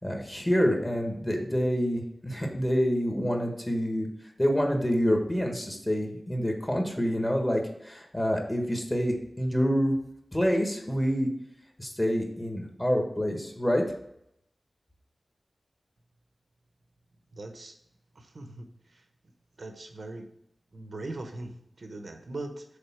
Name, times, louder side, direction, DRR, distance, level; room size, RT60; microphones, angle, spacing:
voice 1, 0.0-4.1 4.4-9.9 10.3-11.3 11.8-13.8, equal, 15° left, 2 dB, 1.5 m, -27 dB
voice 2, 17.3-17.7 18.1-18.7 18.9-19.0 19.6-20.3 20.7-22.6, right 2 dB, 60° right, 5 dB, 0.9 m, -40 dB
6.7 x 3.9 x 6.0 m, 0.76 s
wide cardioid pair, 100°, 0 cm